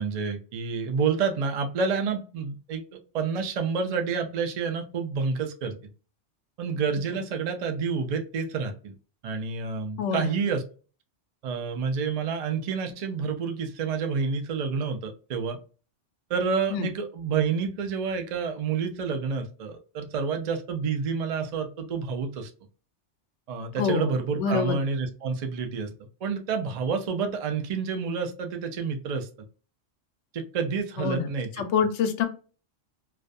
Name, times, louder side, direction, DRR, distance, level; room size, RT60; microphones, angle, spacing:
voice 1, 0.0-2.8 3.1-5.7 6.6-8.9 9.2-10.6 11.4-15.6 16.3-22.5 23.5-25.9 26.2-29.3 30.3-31.5, right 5 dB, 65° right, 5 dB, 0.3 m, -29 dB
voice 2, 10.0-10.4 16.7-16.9 23.8-24.8 31.0-31.3 31.6-32.3, left 6 dB, 75° left, 7 dB, 0.9 m, -26 dB
2.4 x 2.2 x 2.5 m, 0.36 s
omnidirectional pair, 1.2 m